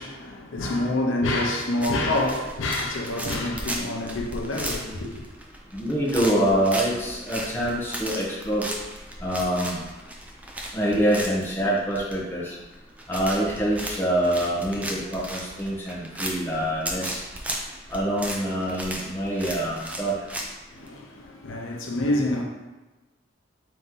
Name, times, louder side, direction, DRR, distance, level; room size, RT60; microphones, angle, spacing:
voice 1, 0.0-5.2 20.7-22.4, left 1 dB, 85° left, 0.7 m, -27 dB
sound 1, 1.8-20.9, right 1 dB, 5° right, 0.3 m, -35 dB
voice 2, 5.7-8.7 9.2-9.8 10.7-12.5 13.1-17.2 17.9-20.1, right 1 dB, 10° left, 0.8 m, -25 dB
4.0 x 2.9 x 3.7 m
head